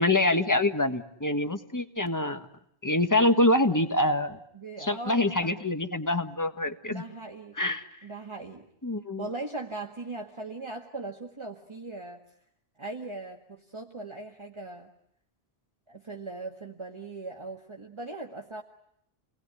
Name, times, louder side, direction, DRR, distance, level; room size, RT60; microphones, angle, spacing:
voice 1, 0.0-2.4 2.8-4.4 4.8-7.0 7.6-7.9 8.8-9.2, left 2 dB, 20° left, 7 dB, 1.6 m, -25 dB
voice 2, 4.5-5.6 6.9-7.6 8.0-8.7 9.2-12.2 12.8-14.9 15.9-18.6, right 3 dB, 30° right, 1 dB, 1.8 m, -39 dB
29.5 x 20.5 x 9.8 m, 0.74 s
omnidirectional pair, 1.0 m